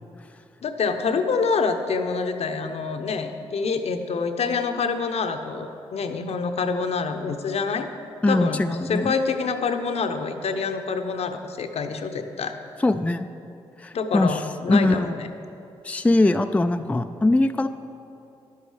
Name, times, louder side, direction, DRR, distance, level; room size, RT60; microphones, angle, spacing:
voice 1, 0.6-7.9 8.3-12.6 13.9-15.3, left 5 dB, 60° left, 7 dB, 0.8 m, -26 dB
voice 2, 8.2-9.1 12.8-13.3 13.8-14.4 14.7-15.2 15.8-17.7, left 2 dB, 10° left, 8 dB, 0.4 m, -21 dB
11.0 x 8.3 x 4.9 m, 2.7 s
supercardioid pair, 45°, 12 cm